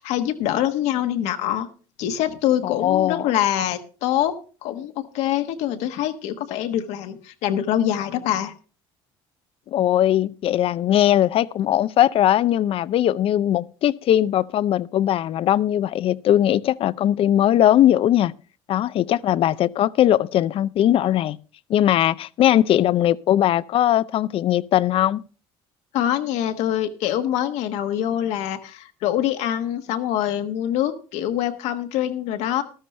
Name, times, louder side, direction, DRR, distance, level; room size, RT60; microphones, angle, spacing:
voice 1, 0.0-1.7 2.0-8.5 25.9-32.6, left 11 dB, 75° left, 1.3 m, -24 dB
voice 2, 2.6-3.3 9.7-18.3 18.7-21.4 21.7-25.2, left 12 dB, 55° left, 0.5 m, -19 dB
13.5 x 12.5 x 3.2 m
supercardioid pair, 85°, 11 cm